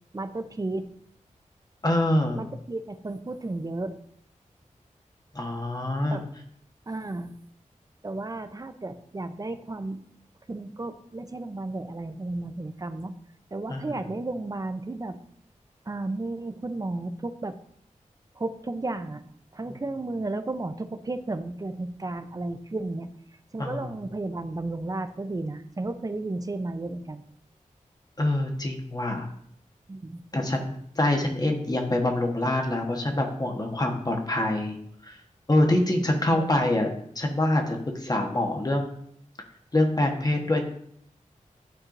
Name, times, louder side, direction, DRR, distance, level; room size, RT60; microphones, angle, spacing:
voice 1, 0.1-0.9 2.4-4.0 6.1-6.2 6.9-7.3 8.0-10.0 10.5-13.1 13.5-15.2 15.9-17.6 18.3-19.2 19.5-23.1 23.5-27.2 29.9-30.2 36.3-36.5, right 2 dB, 25° right, 9 dB, 0.5 m, -33 dB
voice 2, 1.8-2.4 5.3-6.2 13.7-14.0 23.6-23.9 28.2-29.3 30.3-34.8 35.0-35.1 35.5-39.0 39.7-40.6, left 1 dB, 30° left, 2 dB, 1.2 m, -25 dB
11.5 x 4.4 x 2.6 m, 0.67 s
wide cardioid pair, 90°, 13 cm